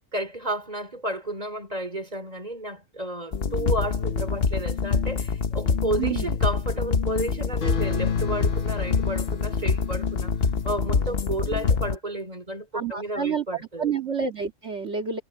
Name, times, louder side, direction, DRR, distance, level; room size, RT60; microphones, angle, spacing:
voice 1, 0.1-10.4 10.6-13.9, right 1 dB, 25° right, 4.1 m, -32 dB
sound 1, 3.3-12.0, left 5 dB, 45° left, 1.1 m, -25 dB
voice 2, 6.0-6.4 12.7-15.2, right 6 dB, 50° right, 2.3 m, -29 dB
omnidirectional pair, 1.5 m